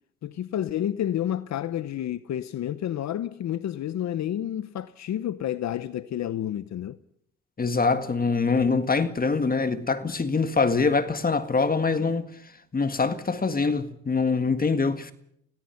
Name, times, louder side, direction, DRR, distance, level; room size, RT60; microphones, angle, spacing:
voice 1, 0.2-7.0, left 11 dB, 65° left, 0.9 m, -30 dB
voice 2, 7.6-15.1, left 4 dB, 30° left, 1.9 m, -24 dB
26.0 x 17.5 x 5.8 m
cardioid pair, 90°, 30 cm